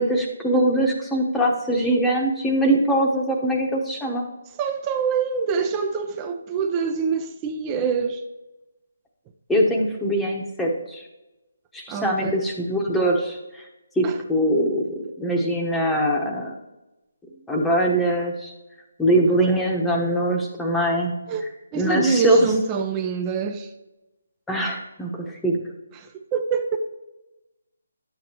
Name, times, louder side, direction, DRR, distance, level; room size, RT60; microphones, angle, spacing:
voice 1, 0.0-4.2 9.5-11.0 11.7-13.6 13.9-16.5 17.5-18.5 19.0-21.2 21.7-22.5 24.5-25.6, right 1 dB, 5° left, 1.0 m, -22 dB
voice 2, 4.6-8.2 11.9-12.3 14.0-14.2 21.3-21.5 21.7-23.7 25.9-26.8, right 5 dB, 20° right, 0.5 m, -25 dB
10.5 x 7.9 x 2.9 m
figure-of-eight pair, 150°, 0 cm